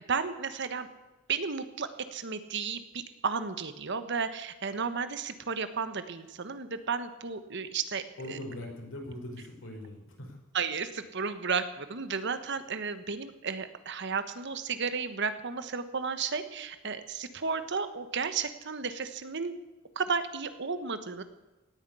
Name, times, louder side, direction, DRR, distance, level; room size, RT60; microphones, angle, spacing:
voice 1, 0.1-0.9 1.3-8.4 10.5-19.5 19.9-21.2, right 5 dB, 60° right, 11 dB, 1.3 m, -33 dB
voice 2, 8.2-10.4, left 1 dB, 65° left, 1 dB, 5.3 m, -41 dB
17.5 x 9.6 x 8.4 m, 1.1 s
head